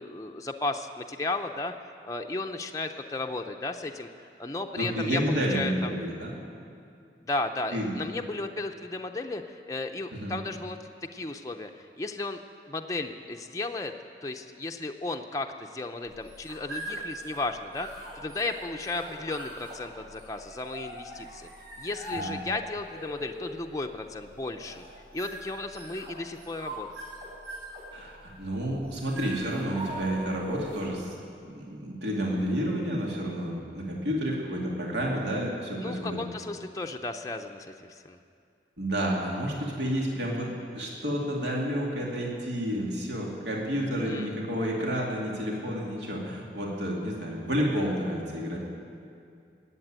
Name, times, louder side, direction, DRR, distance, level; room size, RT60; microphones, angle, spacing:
voice 1, 0.0-1.7 2.0-4.1 4.4-6.0 7.2-10.8 11.1-12.4 12.7-13.9 14.2-21.5 21.8-24.8 25.1-26.9 35.8-38.2 44.0-44.4, left 2 dB, 20° left, 3 dB, 0.5 m, -34 dB
voice 2, 4.8-6.3 7.7-7.9 10.1-10.4 22.1-22.3 27.9-31.2 31.4-36.2 38.8-48.6, equal, 80° right, -2 dB, 2.5 m, -30 dB
sound 1, 16.1-31.0, right 1 dB, 60° right, 4.1 m, -41 dB
19.0 x 8.2 x 8.9 m, 2.4 s
head